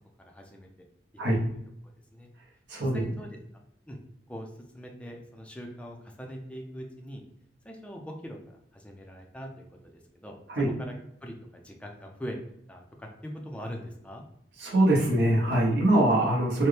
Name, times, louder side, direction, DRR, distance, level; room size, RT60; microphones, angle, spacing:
voice 1, 0.2-0.7 2.1-2.3 2.8-3.4 3.9-4.0 4.3-7.2 7.6-8.4 8.7-10.3 10.8-10.9 11.2-12.4 12.7-14.2, equal, 5° left, 1 dB, 0.5 m, -42 dB
voice 2, 2.7-3.0 10.5-10.7 14.6-16.7, right 1 dB, 75° right, -4 dB, 1.0 m, -23 dB
4.2 x 2.1 x 3.2 m, 0.73 s
head